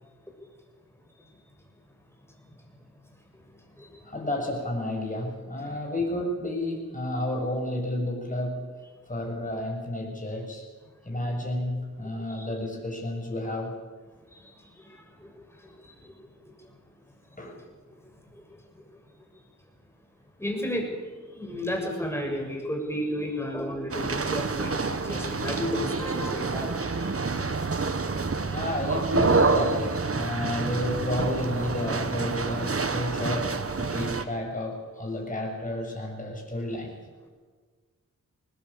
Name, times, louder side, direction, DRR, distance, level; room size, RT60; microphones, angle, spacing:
voice 1, 4.0-8.7 9.1-10.7 11.0-13.8 17.4-17.6 28.4-37.0, left 1 dB, 25° left, 0 dB, 7.0 m, -31 dB
voice 2, 14.3-16.1 16.4-16.7 17.3-17.4 17.9-18.0 18.3-18.4 18.7-18.8 19.2-19.3 20.4-27.1 28.5-28.6, equal, 10° left, 1 dB, 7.1 m, -34 dB
sound 1, 23.9-34.3, right 4 dB, 45° right, 1.6 m, -28 dB
21.5 x 20.0 x 8.6 m, 1.4 s
wide cardioid pair, 70°, 32 cm